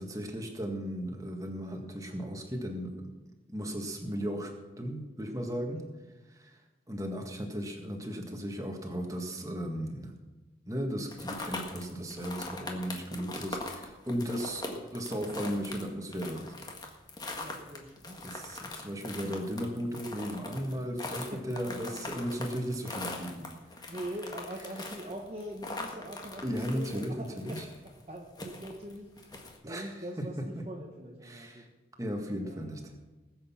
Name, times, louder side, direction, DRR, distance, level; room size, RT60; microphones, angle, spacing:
voice 1, 0.0-2.9 3.5-5.8 6.3-6.6 6.9-10.1 10.7-16.5 18.2-23.5 26.4-27.6 29.6-30.2 31.2-31.7 32.0-32.9, equal, 20° right, 2 dB, 1.8 m, -36 dB
sound 1, 11.1-29.6, left 2 dB, 20° left, 1.6 m, -41 dB
voice 2, 17.4-19.2 21.3-21.4 23.9-29.4 29.6-31.7 32.4-32.9, right 1 dB, 35° right, -1 dB, 1.3 m, -43 dB
19.5 x 8.0 x 5.8 m, 1.2 s
head